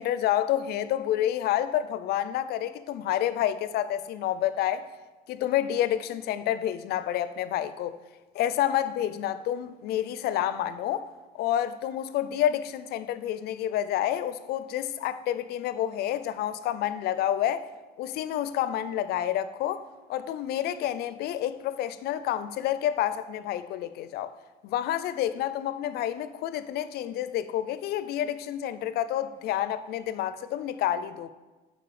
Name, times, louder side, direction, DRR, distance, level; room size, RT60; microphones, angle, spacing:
voice 1, 0.0-4.9 5.3-8.0 8.3-11.0 11.3-17.7 18.0-19.8 20.1-24.3 24.6-31.3, left 11 dB, 70° left, 0.4 m, -29 dB
6.8 x 4.3 x 4.8 m
cardioid pair, 110°, 17 cm